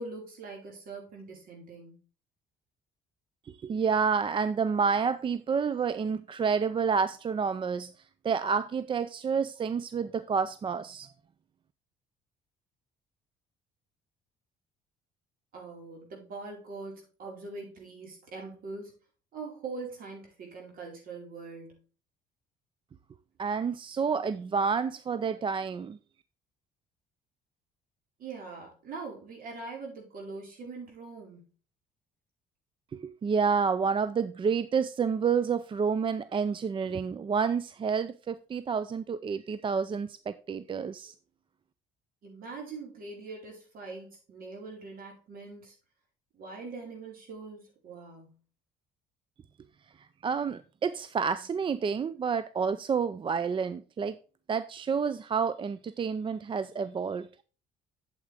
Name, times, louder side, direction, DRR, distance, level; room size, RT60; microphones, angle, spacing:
voice 1, 0.0-2.0 15.5-18.9 19.3-21.8 28.2-31.5 42.2-45.7 46.3-48.4, right 3 dB, 60° right, 4.9 m, -42 dB
voice 2, 3.5-7.9 8.2-11.1 23.4-26.0 32.9-41.1 50.0-54.2 54.5-57.3, right 6 dB, 30° right, 0.5 m, -29 dB
8.7 x 7.8 x 3.5 m
cardioid pair, 110°, 17 cm